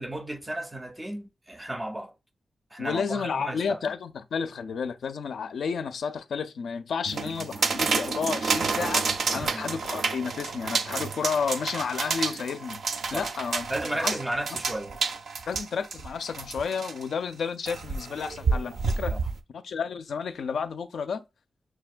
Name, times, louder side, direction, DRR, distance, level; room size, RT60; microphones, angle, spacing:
voice 1, 0.0-2.1 2.7-3.8 9.4-9.6 13.1-13.3 13.7-14.9 19.1-19.3, right 1 dB, 10° right, 0.4 m, -34 dB
voice 2, 2.8-12.8 13.1-13.6 13.9-14.2 15.5-19.2 19.5-21.2, left 6 dB, 90° left, 0.4 m, -31 dB
sound 1, 7.1-17.0 17.7-19.4, right 4 dB, 70° right, 0.4 m, -29 dB
6.0 x 2.2 x 2.4 m
wide cardioid pair, 155°, 0 cm